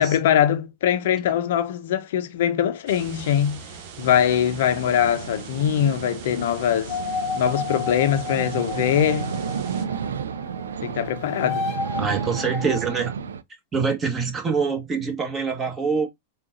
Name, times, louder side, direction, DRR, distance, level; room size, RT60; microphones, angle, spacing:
voice 1, 0.0-3.6 4.0-7.0 7.4-9.4 10.8-11.7, left 10 dB, 70° left, 0.7 m, -22 dB
sound 1, 2.9-9.8, right 5 dB, 55° right, 1.3 m, -41 dB
sound 2, 4.0-13.4, right 7 dB, 85° right, 0.4 m, -32 dB
sound 3, 6.9-10.7 11.0-13.0, left 5 dB, 35° left, 0.8 m, -32 dB
voice 2, 12.0-13.1 13.7-16.1, right 5 dB, 20° right, 1.4 m, -25 dB
3.8 x 2.5 x 3.7 m
hypercardioid pair, 115°, 0 cm